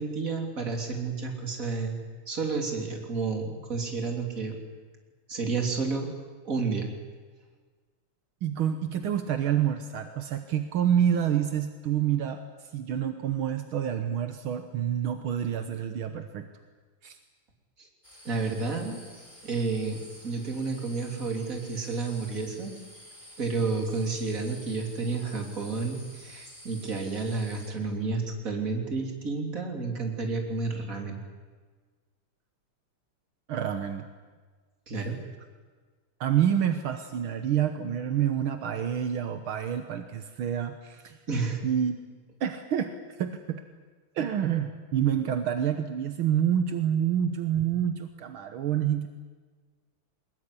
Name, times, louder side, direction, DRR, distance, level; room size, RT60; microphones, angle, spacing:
voice 1, 0.0-2.0 2.3-4.6 5.3-6.1 6.5-6.9 18.3-19.0 19.4-22.7 23.4-31.2 34.9-35.2 41.3-41.6, right 4 dB, 40° right, 3 dB, 3.6 m, -31 dB
voice 2, 8.4-12.4 12.7-16.5 17.0-17.2 33.5-34.1 34.9-35.0 36.2-41.2 41.6-42.0 42.4-43.6 44.2-49.1, right 9 dB, 75° right, 8 dB, 2.0 m, -28 dB
sound 1, 18.0-27.7, equal, 15° left, 4.6 m, -50 dB
22.5 x 20.5 x 9.9 m, 1.4 s
omnidirectional pair, 2.3 m